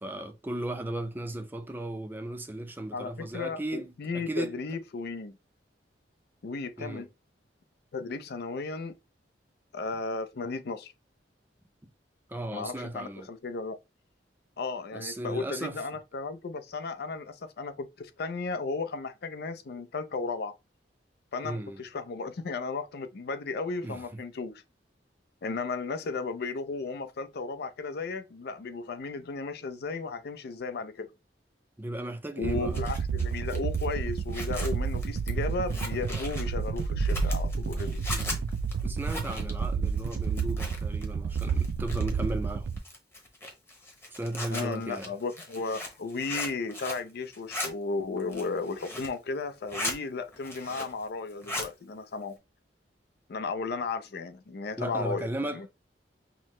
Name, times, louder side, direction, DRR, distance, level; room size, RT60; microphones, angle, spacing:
voice 1, 0.0-4.6 6.8-7.1 12.3-13.3 14.9-15.9 21.4-21.8 23.8-24.2 31.8-32.8 38.1-38.4 38.8-42.7 44.1-45.1 54.8-55.7, right 1 dB, 10° right, 0.5 m, -36 dB
voice 2, 2.9-5.4 6.4-7.1 7.9-8.9 9.7-10.9 12.5-13.8 14.6-20.5 21.3-24.6 25.4-31.1 32.4-38.0 44.5-52.4 53.3-55.7, left 4 dB, 60° left, 0.5 m, -35 dB
sound 1, 32.4-42.8, right 5 dB, 70° right, 0.3 m, -30 dB
Zipper (clothing), 32.5-41.1 41.3-42.3 42.8-47.1 47.3-47.7 48.2-49.2 49.5-50.0 50.3-51.0 51.3-51.7, left 2 dB, 15° left, 1.0 m, -38 dB
5.9 x 2.1 x 3.0 m
head